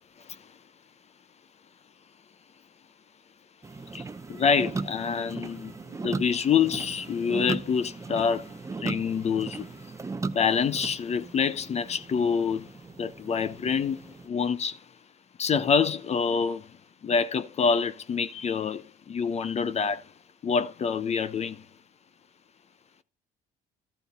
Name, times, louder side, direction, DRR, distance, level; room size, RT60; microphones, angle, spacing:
voice 1, 0.2-0.5 3.9-5.7 6.0-9.9 10.3-12.7 13.0-14.8 15.4-16.8 17.0-20.1 20.4-21.7, left 6 dB, 40° left, 0.8 m, -27 dB
sound 1, 3.6-14.3, right 3 dB, 20° right, 0.7 m, -37 dB
13.0 x 4.5 x 5.2 m
cardioid pair, 110°, 17 cm